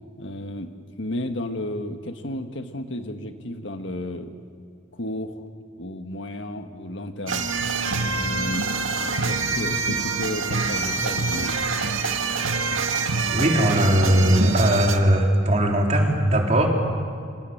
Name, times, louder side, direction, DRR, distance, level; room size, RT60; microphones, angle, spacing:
voice 1, 0.2-4.3 4.9-5.5 5.8-7.5 8.0-8.7 9.0-11.6, left 1 dB, 65° left, 7 dB, 1.7 m, -33 dB
sound 1, 7.3-15.0, right 4 dB, 85° right, 2.0 m, -25 dB
voice 2, 13.3-16.7, right 1 dB, 35° right, 0 dB, 4.0 m, -19 dB
27.0 x 26.5 x 8.0 m, 2.4 s
head